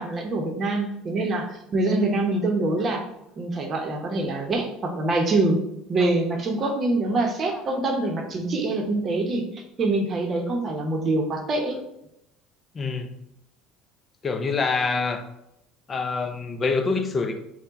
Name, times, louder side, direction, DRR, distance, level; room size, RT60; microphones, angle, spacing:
voice 1, 0.0-3.0 3.4-5.6 5.9-9.5 9.8-11.8, right 2 dB, 40° right, 3 dB, 0.8 m, -25 dB
voice 2, 12.7-13.1 14.2-15.2 15.9-17.4, left 4 dB, 30° left, 8 dB, 0.5 m, -26 dB
4.3 x 2.2 x 4.0 m, 0.84 s
supercardioid pair, 85°, 0 cm